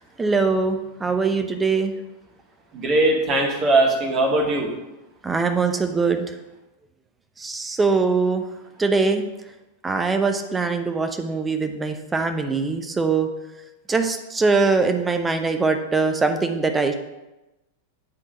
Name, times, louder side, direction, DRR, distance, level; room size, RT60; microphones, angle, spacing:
voice 1, 0.2-1.9 5.2-6.3 7.4-8.4 8.8-9.2 9.8-13.3 13.9-16.9, right 4 dB, 15° right, 6 dB, 0.9 m, -22 dB
voice 2, 2.7-4.7, right 2 dB, 30° right, 0 dB, 2.0 m, -20 dB
9.9 x 3.9 x 6.3 m, 1.0 s
figure-of-eight pair, 90°, 0 cm